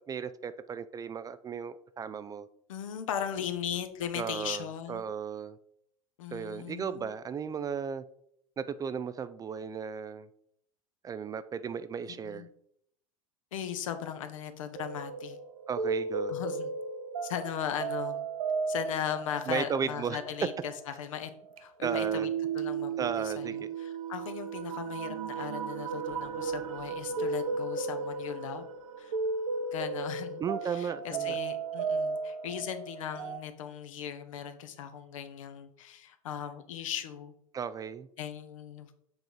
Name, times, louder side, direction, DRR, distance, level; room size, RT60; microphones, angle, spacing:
voice 1, 0.1-2.5 4.1-5.6 6.3-8.0 8.6-10.3 11.0-12.5 15.7-16.4 19.5-20.2 21.8-22.3 23.0-23.7 30.4-31.3 37.5-38.1, right 6 dB, 20° right, 13 dB, 0.4 m, -35 dB
voice 2, 2.7-5.1 6.2-7.1 12.2-12.5 13.5-15.4 16.3-16.7 17.2-18.3 18.7-20.7 21.0-21.3 21.6-22.3 22.5-28.7 29.0-29.1 29.7-37.3 38.2-38.9, left 9 dB, 65° left, 9 dB, 0.9 m, -38 dB
sound 1, 14.8-33.4, right 5 dB, 70° right, 0.8 m, -35 dB
7.9 x 3.8 x 4.8 m, 0.70 s
figure-of-eight pair, 80°, 18 cm